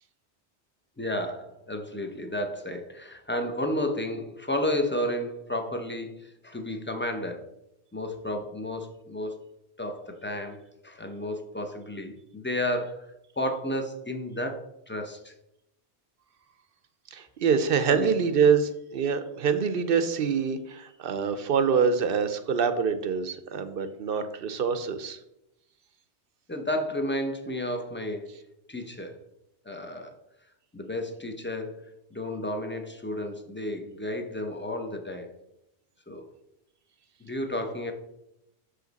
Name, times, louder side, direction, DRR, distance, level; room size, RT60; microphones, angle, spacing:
voice 1, 1.0-7.5 7.9-9.4 9.8-13.1 13.4-15.3 17.9-18.1 26.5-28.3 28.7-29.2 29.6-30.1 30.7-31.8 32.1-35.3 36.1-36.2 37.2-37.9, left 1 dB, 15° left, 5 dB, 0.5 m, -32 dB
voice 2, 17.1-25.2, right 6 dB, 60° right, 11 dB, 0.7 m, -25 dB
6.4 x 5.0 x 4.0 m, 0.84 s
omnidirectional pair, 1.2 m